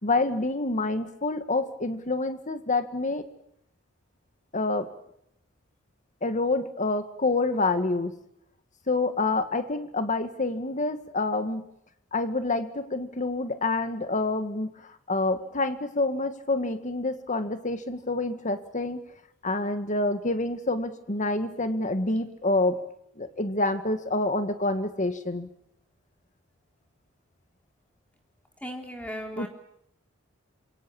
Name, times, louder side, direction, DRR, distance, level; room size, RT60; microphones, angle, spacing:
voice 1, 0.0-3.2 4.5-4.9 6.2-8.2 8.9-11.7 12.1-19.0 19.4-22.8 23.2-25.5 29.4-29.5, left 2 dB, 40° left, 9 dB, 1.9 m, -27 dB
voice 2, 28.6-29.5, equal, 5° left, 2 dB, 3.7 m, -36 dB
27.5 x 24.0 x 7.3 m, 0.74 s
head